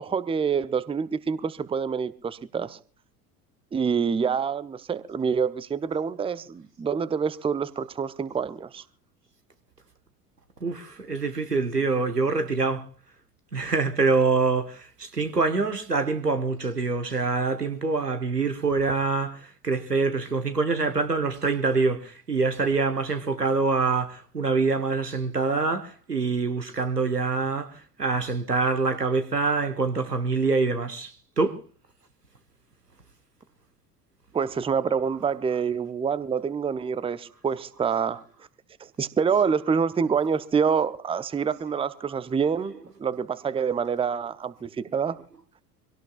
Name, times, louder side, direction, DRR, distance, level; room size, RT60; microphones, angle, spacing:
voice 1, 0.0-2.8 3.7-8.8 34.3-38.2 38.8-45.2, right 6 dB, 10° right, 0.7 m, -26 dB
voice 2, 10.6-12.8 13.5-27.7 28.0-31.1 31.4-31.6, right 4 dB, 90° right, 1.3 m, -25 dB
25.5 x 17.5 x 2.4 m
figure-of-eight pair, 65°, 46 cm